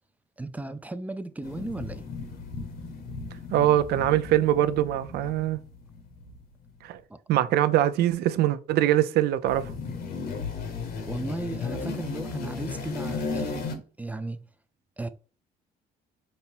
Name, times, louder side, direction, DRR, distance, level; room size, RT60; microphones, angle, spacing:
voice 1, 0.4-2.0 7.1-7.2 11.1-14.5 15.0-15.1, right 2 dB, 10° right, 0.3 m, -35 dB
sound 1, 1.4-6.5 9.5-13.8, left 4 dB, 65° left, 1.1 m, -35 dB
voice 2, 3.5-5.6 6.8-7.0 7.3-9.7, right 12 dB, 70° right, 0.5 m, -23 dB
5.3 x 2.1 x 4.2 m
cardioid pair, 110°, 17 cm